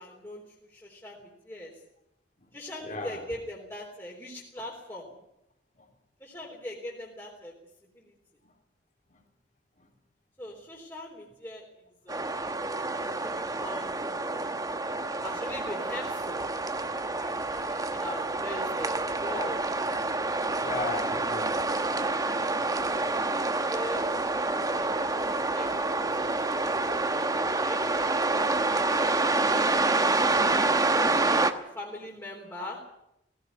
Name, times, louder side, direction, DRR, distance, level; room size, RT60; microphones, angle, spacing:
voice 1, 0.0-1.7 2.5-5.1 6.2-7.5 7.9-8.2 10.4-16.4 17.2-19.6 23.5-24.1 24.3-27.9 31.5-32.8, left 1 dB, 15° left, 3.8 m, -41 dB
voice 2, 2.8-3.2 5.8-5.9 8.4-8.5 9.1-9.2 9.8-9.9 12.5-12.6 14.6-14.7 15.2-15.3 17.2-17.3 17.9-18.0 19.0-19.1 20.3-22.0 28.6-28.8 29.3-29.4 30.0-30.1 30.7-30.8 31.3-31.5, left 3 dB, 45° left, 3.8 m, -40 dB
sound 1, 12.1-31.5, right 2 dB, 20° right, 1.2 m, -28 dB
18.0 x 16.5 x 9.5 m
head